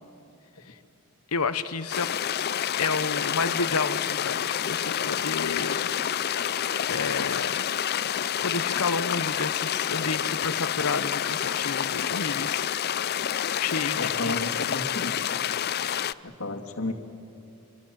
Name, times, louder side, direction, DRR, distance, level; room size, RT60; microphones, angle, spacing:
voice 1, 1.3-2.1 2.8-5.9 6.4-6.6 6.9-7.7 8.4-12.7 13.6-14.3, left 4 dB, 90° left, 12 dB, 1.0 m, -31 dB
sound 1, 1.9-16.1, left 9 dB, 45° left, 0.5 m, -28 dB
voice 2, 14.0-15.2 16.2-16.9, left 2 dB, 70° left, 4 dB, 2.2 m, -32 dB
25.5 x 24.5 x 7.6 m, 2.8 s
head